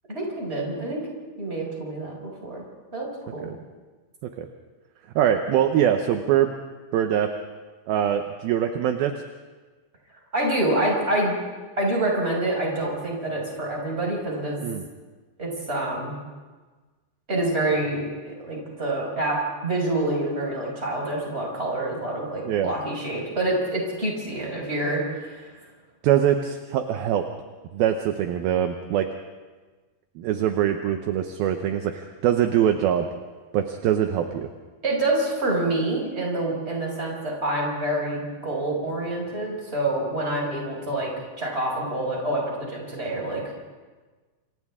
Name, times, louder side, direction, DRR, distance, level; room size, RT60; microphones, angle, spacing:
voice 1, 0.1-1.0 1.4-2.6 2.9-3.5 10.3-11.4 11.8-14.6 15.4-16.1 17.3-19.4 19.6-25.5 34.8-41.1 41.4-43.5, right 1 dB, 15° right, -2 dB, 5.2 m, -27 dB
voice 2, 5.2-6.5 6.9-7.3 7.9-9.1 14.6-14.8 22.5-22.7 26.0-27.3 27.7-29.1 30.2-33.1 33.5-34.5, right 10 dB, 75° right, 6 dB, 2.3 m, -23 dB
28.5 x 26.0 x 3.6 m, 1.3 s
omnidirectional pair, 5.2 m